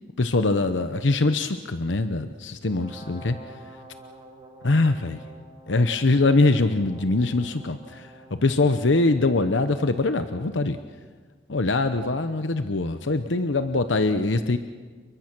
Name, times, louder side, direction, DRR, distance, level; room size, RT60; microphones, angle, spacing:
voice 1, 0.2-3.4 4.6-5.2 5.7-10.8 11.5-14.6, left 2 dB, 80° left, 9 dB, 0.9 m, -23 dB
Brass instrument, 2.6-8.5, right 1 dB, 25° right, 2.7 m, -47 dB
30.0 x 22.5 x 6.1 m, 1.5 s
head